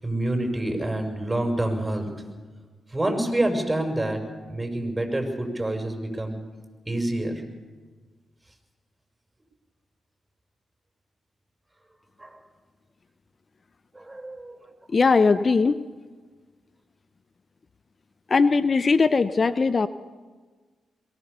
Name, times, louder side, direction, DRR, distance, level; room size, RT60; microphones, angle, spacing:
voice 1, 0.0-2.1 2.9-4.2 4.5-6.4 6.9-7.3 12.2-12.4 13.9-14.6 15.3-15.4, right 1 dB, 20° right, 4 dB, 6.4 m, -27 dB
voice 2, 14.9-15.8 18.3-19.9, left 4 dB, 45° left, 14 dB, 0.7 m, -20 dB
23.0 x 18.0 x 6.9 m, 1.4 s
supercardioid pair, 45°, 0 cm